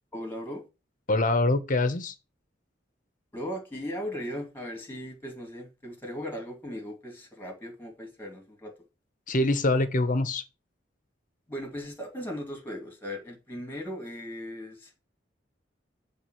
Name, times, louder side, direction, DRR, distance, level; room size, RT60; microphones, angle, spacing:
voice 1, 0.1-0.6 3.3-8.7 11.5-14.9, equal, 10° left, 2.6 m, -38 dB
voice 2, 1.1-2.1 9.3-10.4, left 2 dB, 45° left, 1.0 m, -24 dB
7.2 x 3.6 x 6.2 m
head